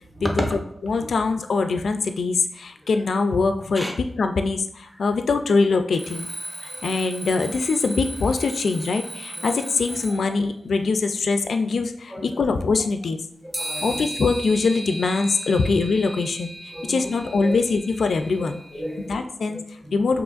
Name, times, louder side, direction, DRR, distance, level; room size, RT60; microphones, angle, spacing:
voice 1, 0.8-6.3 6.6-13.2 13.8-16.5 16.9-18.6 19.0-19.6 19.9-20.2, left 4 dB, 75° left, 7 dB, 0.3 m, -23 dB
Alarm, 5.9-10.4, right 1 dB, 40° right, 0.8 m, -36 dB
voice 2, 13.5-14.0 15.5-15.7 16.7-17.0 17.4-17.6 18.4-19.9, equal, 5° right, 0 dB, 0.7 m, -32 dB
sound 1, 13.5-18.8, right 1 dB, 25° right, 1.5 m, -36 dB
6.1 x 2.9 x 2.4 m, 0.68 s
wide cardioid pair, 125°, 0 cm